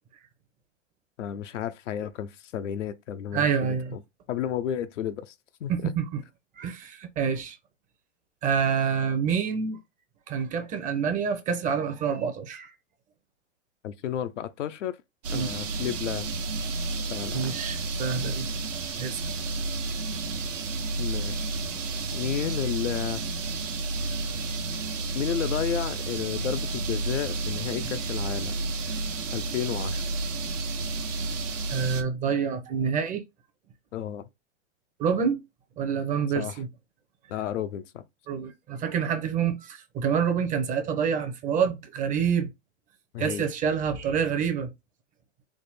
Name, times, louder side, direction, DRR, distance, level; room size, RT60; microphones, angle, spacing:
voice 1, 1.2-4.0 4.3-5.3 5.6-5.9 13.8-15.0 15.3-16.3 17.1-17.6 21.0-21.5 22.1-23.2 25.1-28.6 29.3-30.0 33.9-34.3 36.3-36.6 37.3-38.0 43.1-43.5, left 10 dB, 80° left, 0.6 m, -32 dB
voice 2, 3.3-4.0 5.7-6.2 6.6-7.6 8.4-9.8 10.3-12.7 15.3-15.5 17.3-18.5 19.0-19.2 31.7-33.2 35.0-35.4 35.8-36.7 38.3-42.5 43.2-44.7, right 7 dB, 20° right, 0.6 m, -27 dB
sound 1, 15.2-32.0, right 3 dB, 85° right, 1.0 m, -31 dB
3.6 x 2.1 x 4.0 m
hypercardioid pair, 125°, 37 cm